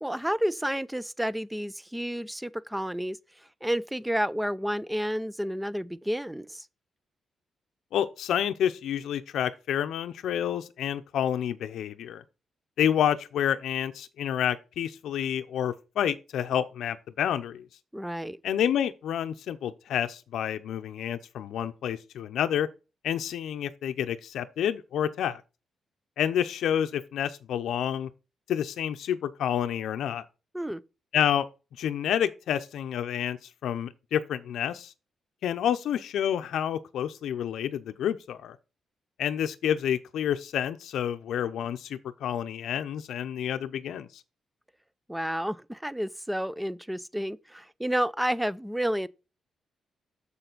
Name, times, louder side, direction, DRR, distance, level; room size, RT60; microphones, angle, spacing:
voice 1, 0.0-3.2 3.6-6.7 17.9-18.4 30.5-30.8 45.1-49.1, equal, 5° right, 0.4 m, -30 dB
voice 2, 7.9-12.2 12.8-17.7 18.4-22.7 23.0-25.4 26.2-28.1 28.5-30.2 31.1-31.5 31.8-33.4 33.6-34.9 35.4-38.6 39.2-44.2, left 9 dB, 85° left, 0.6 m, -29 dB
7.0 x 6.8 x 3.9 m
cardioid pair, 100°, 0 cm